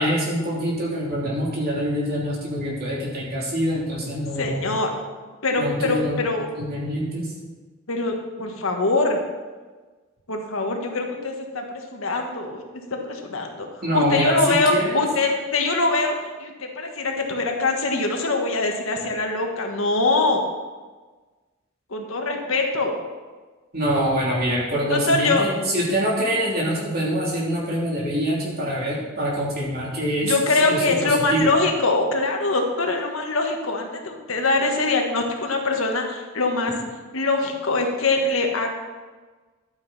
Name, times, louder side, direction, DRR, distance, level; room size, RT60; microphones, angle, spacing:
voice 1, 0.0-4.7 5.6-6.2 6.6-7.3 13.8-15.0 23.7-31.5, equal, 50° right, -5 dB, 3.3 m, -25 dB
voice 2, 4.4-4.9 5.4-6.5 7.9-9.2 10.3-12.6 12.9-13.7 13.9-20.4 21.9-23.0 24.9-25.4 30.2-36.7 37.1-38.7, left 3 dB, 90° left, 2 dB, 1.6 m, -23 dB
12.0 x 8.9 x 4.2 m, 1.3 s
head